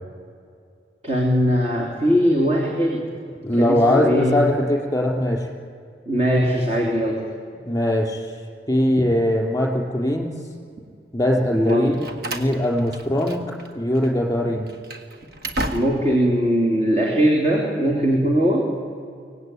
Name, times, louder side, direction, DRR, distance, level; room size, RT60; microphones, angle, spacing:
voice 1, 1.0-3.0 3.6-4.4 6.1-7.2 11.5-12.0 15.7-18.6, equal, 35° right, -1 dB, 3.0 m, -20 dB
voice 2, 3.4-5.5 7.7-8.2 8.7-10.3 11.1-13.4 13.7-14.7, left 1 dB, 15° left, 1 dB, 3.7 m, -21 dB
Slam, 11.7-13.7 13.9-14.1 14.6-16.2, right 1 dB, 60° right, 1.7 m, -32 dB
24.0 x 18.0 x 9.6 m, 2.4 s
head